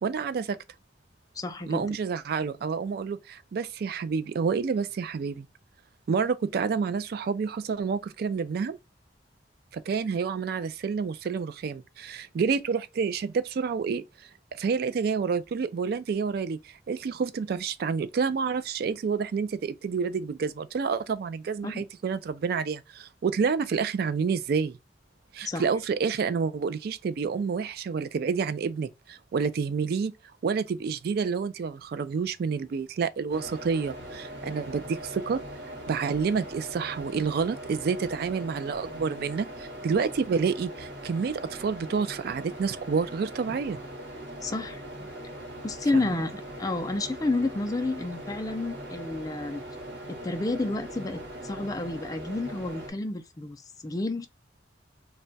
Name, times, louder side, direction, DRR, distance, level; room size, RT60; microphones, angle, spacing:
voice 1, 0.0-0.6 1.7-5.5 6.1-8.8 9.7-14.0 14.6-24.8 25.3-30.1 30.4-35.4 35.9-43.8 46.1-46.2, right 5 dB, 60° right, 0.3 m, -29 dB
voice 2, 1.3-2.0 21.6-21.9 25.5-25.6 44.4-45.1 45.6-49.6 50.1-54.3, left 2 dB, 20° left, 0.4 m, -30 dB
sound 1, 33.3-52.9, right 1 dB, 85° right, 1.1 m, -41 dB
2.2 x 2.1 x 3.8 m
head